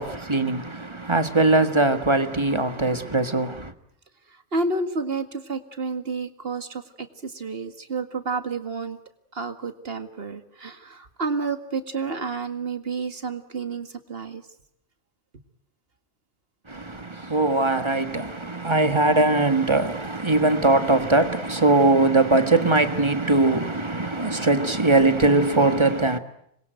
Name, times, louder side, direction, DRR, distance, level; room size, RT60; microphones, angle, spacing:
voice 1, 0.0-3.7 16.7-26.2, right 2 dB, 25° right, 1.6 m, -21 dB
voice 2, 4.5-9.0 9.3-14.4, right 4 dB, 60° right, 2.1 m, -30 dB
26.5 x 22.0 x 9.2 m
omnidirectional pair, 1.1 m